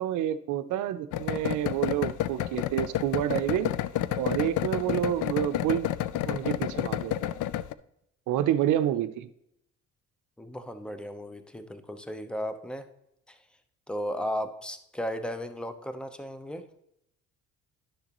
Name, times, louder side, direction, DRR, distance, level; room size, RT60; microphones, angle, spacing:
voice 1, 0.0-3.7 4.2-5.9 6.3-7.3 8.3-9.3, right 11 dB, 85° right, 9 dB, 0.6 m, -28 dB
sound 1, 1.1-7.7, left 12 dB, 80° left, 0.5 m, -30 dB
voice 2, 10.4-12.9 13.3-13.4 13.9-16.6, equal, 5° left, 9 dB, 0.8 m, -35 dB
11.0 x 6.5 x 3.0 m, 0.78 s
cardioid pair, 90°, 30 cm